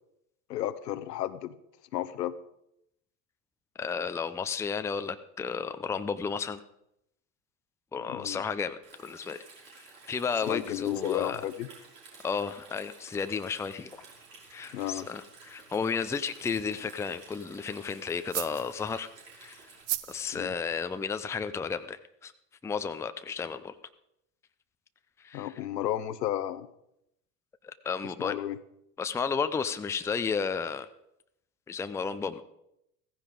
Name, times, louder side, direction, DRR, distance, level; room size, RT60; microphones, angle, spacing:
voice 1, 0.5-1.5 1.9-2.4 8.1-8.4 10.5-11.7 14.7-15.1 20.3-20.5 25.3-26.7 28.0-28.6, left 12 dB, 75° left, 14 dB, 0.9 m, -33 dB
voice 2, 3.8-6.6 7.9-9.4 10.1-11.4 12.2-13.9 14.5-19.1 19.4-19.6 20.1-22.3 22.6-23.8 25.2-25.5 27.8-28.4 29.0-30.9 31.7-32.4, left 5 dB, 5° left, 10 dB, 0.5 m, -32 dB
Stream, 8.8-19.8, right 4 dB, 75° right, 5.5 m, -53 dB
sound 1, 13.5-21.4, right 15 dB, 50° right, 0.9 m, -43 dB
16.0 x 15.0 x 3.8 m, 0.81 s
figure-of-eight pair, 75°, 49 cm